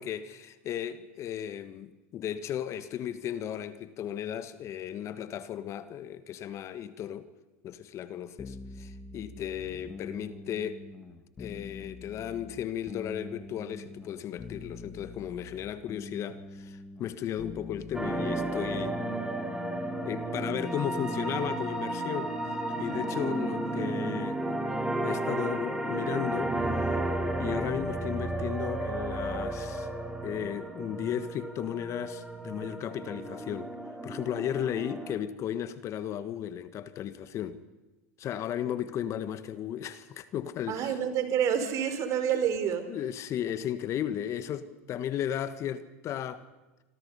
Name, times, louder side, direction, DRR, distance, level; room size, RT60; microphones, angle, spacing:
voice 1, 0.0-7.3 7.6-10.8 11.4-19.0 20.0-22.4 22.8-24.6 25.0-26.6 27.4-29.9 30.2-33.7 34.0-37.6 38.2-40.9 42.9-46.4, left 10 dB, 40° left, 1.4 m, -35 dB
sound 1, 8.4-20.2, left 3 dB, 20° left, 2.5 m, -45 dB
sound 2, 17.9-35.2, right 1 dB, 5° right, 3.7 m, -33 dB
voice 2, 40.7-42.9, right 8 dB, 45° right, 4.2 m, -28 dB
27.5 x 26.0 x 5.5 m
hypercardioid pair, 95°, 7 cm